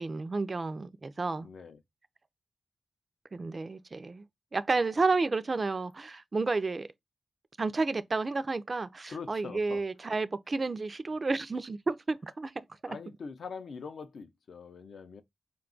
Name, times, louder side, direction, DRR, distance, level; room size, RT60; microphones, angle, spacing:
voice 1, 0.0-1.5 3.3-4.2 4.5-6.9 7.6-13.0, right 3 dB, 35° right, 0.3 m, -31 dB
voice 2, 1.4-1.8 9.1-9.8 12.9-15.2, left 5 dB, 70° left, 0.5 m, -43 dB
4.8 x 2.3 x 3.7 m
wide cardioid pair, 140°, 0 cm